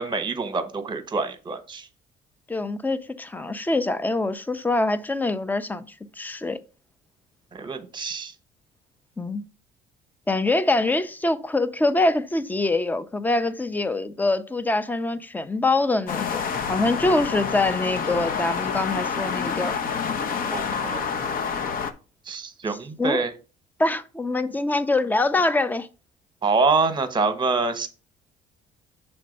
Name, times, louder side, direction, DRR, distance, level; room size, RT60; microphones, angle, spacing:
voice 1, 0.0-1.9 7.5-8.3 20.5-21.0 22.3-23.3 26.4-27.9, right 4 dB, 25° right, 1.1 m, -25 dB
voice 2, 2.5-5.9 6.2-6.6 9.2-9.4 10.3-16.4 16.7-19.8 23.0-23.2 23.8-25.9, left 2 dB, 10° left, 0.5 m, -24 dB
sound 1, 16.1-21.9, left 6 dB, 60° left, 0.8 m, -28 dB
6.5 x 3.4 x 5.2 m
cardioid pair, 110°, 17 cm